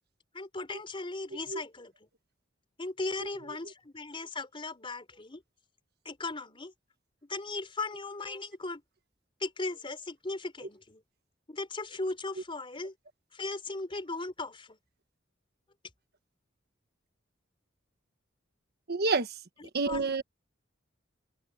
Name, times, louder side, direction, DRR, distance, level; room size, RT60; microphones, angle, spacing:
voice 1, 0.3-2.1 2.8-5.4 6.0-6.7 7.3-8.8 9.4-11.0 11.5-12.9 13.3-14.8 19.6-20.1, left 3 dB, 25° left, 4.3 m, -37 dB
voice 2, 18.9-19.3 19.7-20.2, right 4 dB, 55° right, 1.4 m, -27 dB
open air
head